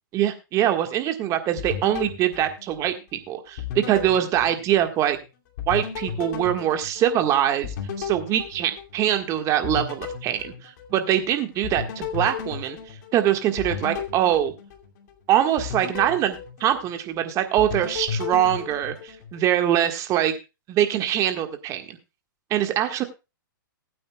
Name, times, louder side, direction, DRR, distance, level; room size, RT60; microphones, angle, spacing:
voice 1, 0.1-3.6 3.9-5.2 5.7-12.8 13.1-14.5 15.3-20.3 20.7-22.0 22.5-23.0, right 11 dB, 30° right, 7 dB, 1.6 m, -23 dB
sound 1, 1.6-3.2 3.6-5.2 5.6-9.2 9.6-11.2 11.6-15.1 15.6-17.2 17.6-19.5, left 7 dB, 50° left, 2.6 m, -34 dB
20.0 x 8.7 x 2.3 m, 0.27 s
hypercardioid pair, 130°, 11 cm